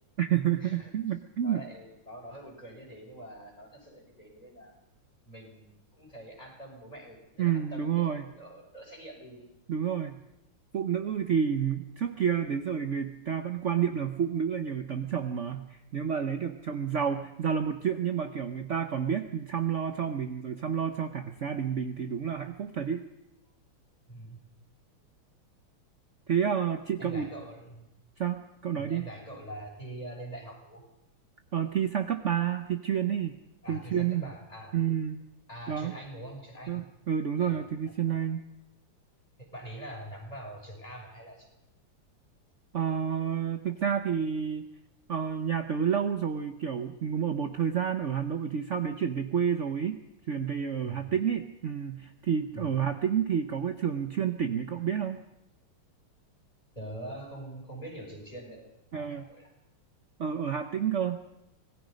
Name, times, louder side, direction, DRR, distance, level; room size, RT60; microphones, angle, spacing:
voice 1, 0.2-1.6 7.4-8.2 9.7-10.2 10.7-23.0 26.3-27.3 28.2-29.0 31.5-33.3 33.7-34.2 34.7-35.2 35.7-35.9 36.7-38.4 42.7-44.7 45.1-55.2 58.9-59.2 60.2-61.2, right 8 dB, 55° right, 7 dB, 0.8 m, -29 dB
voice 2, 1.4-4.7 5.2-9.5 24.1-24.4 27.0-27.9 28.8-30.8 33.6-34.8 35.5-36.8 37.4-38.2 39.4-41.5 50.8-51.1 52.5-52.8 56.7-59.5, right 1 dB, 15° left, 0 dB, 6.4 m, -44 dB
26.0 x 19.5 x 5.2 m, 0.88 s
omnidirectional pair, 2.4 m